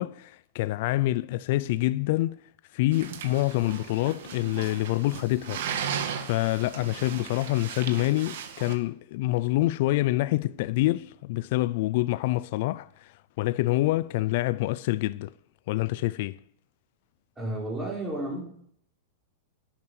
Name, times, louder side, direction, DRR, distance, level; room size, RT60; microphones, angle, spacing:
voice 1, 0.0-2.4 2.7-5.6 6.2-15.3 15.7-16.4, left 17 dB, 55° left, 0.4 m, -26 dB
sound 1, 2.9-8.7, right 8 dB, 65° right, 2.0 m, -36 dB
voice 2, 17.4-18.5, right 1 dB, 10° right, 5.3 m, -32 dB
11.0 x 8.8 x 8.3 m
supercardioid pair, 150°, 0 cm